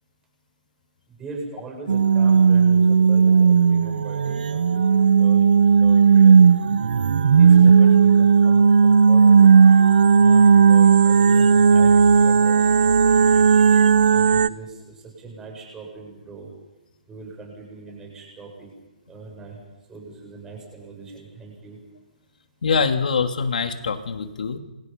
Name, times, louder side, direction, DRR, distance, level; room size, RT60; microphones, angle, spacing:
voice 1, 1.2-6.3 7.3-9.6 10.2-13.4 14.1-16.5 17.1-18.7 19.1-19.6 19.9-21.8, right 3 dB, 10° right, 0 dB, 8.0 m, -40 dB
sound 1, 1.9-14.5, right 6 dB, 70° right, 0.8 m, -15 dB
voice 2, 22.6-24.6, left 5 dB, 70° left, 5 dB, 3.1 m, -24 dB
29.0 x 26.5 x 5.5 m, 1.0 s
hypercardioid pair, 165°, 5 cm